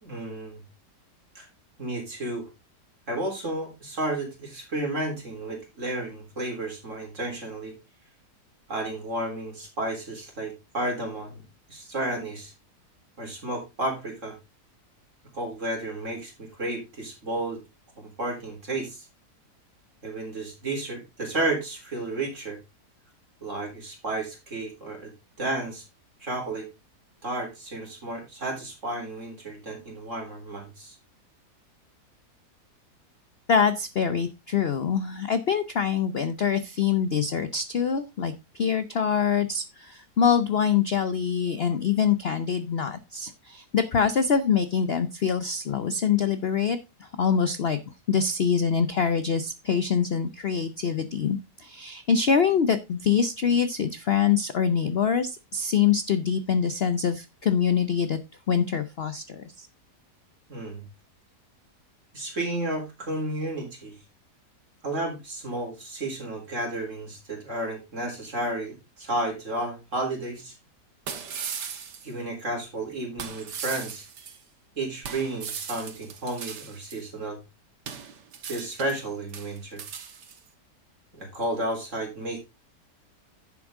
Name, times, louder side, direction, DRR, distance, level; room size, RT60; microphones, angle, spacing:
voice 1, 0.0-0.6 1.3-1.5 1.8-2.5 3.1-7.7 8.7-11.4 11.7-12.5 13.2-14.3 15.3-17.6 18.0-19.1 20.0-22.6 23.4-25.1 25.4-25.8 26.2-26.7 27.2-30.9 60.5-60.8 62.1-63.9 64.8-70.6 72.0-74.0 74.8-77.4 78.4-79.8 81.1-82.4, right 2 dB, 45° right, 1 dB, 4.2 m, -32 dB
voice 2, 33.5-47.8 48.1-58.2 58.5-59.7, left 7 dB, 50° left, 12 dB, 0.7 m, -25 dB
sound 1, 70.4-70.5 71.1-72.1 73.2-74.4 75.0-77.0 77.9-79.0 79.3-80.4, right 7 dB, 85° right, 1.9 m, -38 dB
11.0 x 7.3 x 3.6 m, 0.24 s
omnidirectional pair, 1.8 m